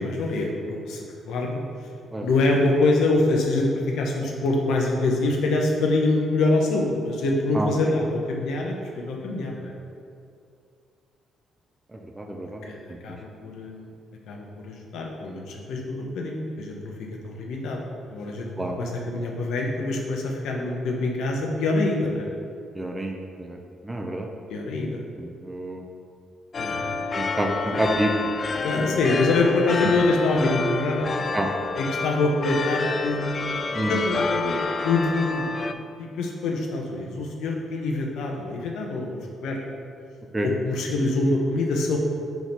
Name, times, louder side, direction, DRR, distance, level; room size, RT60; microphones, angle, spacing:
voice 1, 0.0-1.6 2.2-9.7 12.6-13.9 14.3-16.9 17.2-18.5 18.8-22.3 24.5-25.0 26.6-27.0 28.6-31.1 31.8-35.7 36.0-39.1 39.4-39.6 40.4-42.0, left 2 dB, 80° left, 0 dB, 0.9 m, -25 dB
voice 2, 11.9-12.6 13.1-13.2 18.6-18.8 22.7-23.6 23.8-24.3 25.2-25.8 27.1-28.1 28.8-28.9 31.3-31.5 33.7-34.0 40.3-40.5, right 1 dB, 15° right, 2 dB, 0.6 m, -28 dB
sound 1, 26.5-35.7, left 4 dB, 40° left, 0.3 m, -29 dB
4.6 x 4.3 x 5.4 m, 2.4 s
cardioid pair, 90°, 0 cm